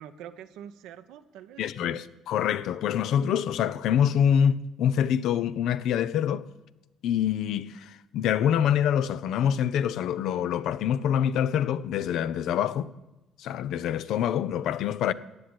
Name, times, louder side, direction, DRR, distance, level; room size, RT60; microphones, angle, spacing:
voice 1, 0.0-2.2, right 9 dB, 80° right, 1.0 m, -46 dB
voice 2, 1.6-6.4 7.0-12.9 13.4-15.1, left 9 dB, 70° left, 0.6 m, -25 dB
14.0 x 8.8 x 9.7 m
supercardioid pair, 60°, 0 cm